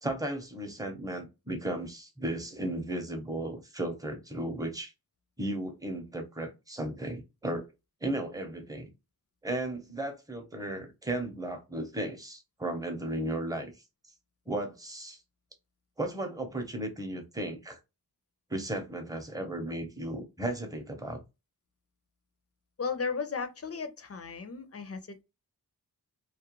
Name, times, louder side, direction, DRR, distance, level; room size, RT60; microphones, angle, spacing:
voice 1, 0.0-4.9 5.4-7.7 8.0-8.9 9.4-13.7 14.5-15.2 16.0-17.8 18.5-21.2, right 1 dB, 10° right, 0.7 m, -35 dB
voice 2, 22.8-25.2, left 5 dB, 40° left, 0.5 m, -35 dB
2.4 x 2.1 x 2.9 m
wide cardioid pair, 90°, 39 cm